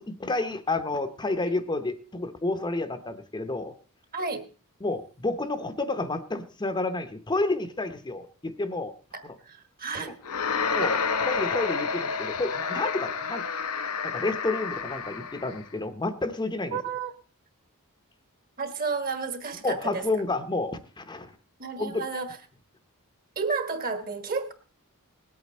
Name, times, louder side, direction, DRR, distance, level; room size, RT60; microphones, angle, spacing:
voice 1, 0.0-3.7 4.8-8.9 9.2-9.4 10.0-10.1 10.7-13.4 14.0-16.8 19.6-21.3 21.8-22.0, left 2 dB, 20° left, 9 dB, 0.7 m, -30 dB
voice 2, 4.1-4.5 9.1-9.2 9.5-10.1 16.7-17.1 18.6-20.0 21.6-22.4 23.4-24.5, right 4 dB, 40° right, 9 dB, 1.4 m, -31 dB
sound 1, 10.2-15.6, left 5 dB, 85° left, 0.8 m, -29 dB
19.5 x 8.5 x 4.2 m, 0.37 s
head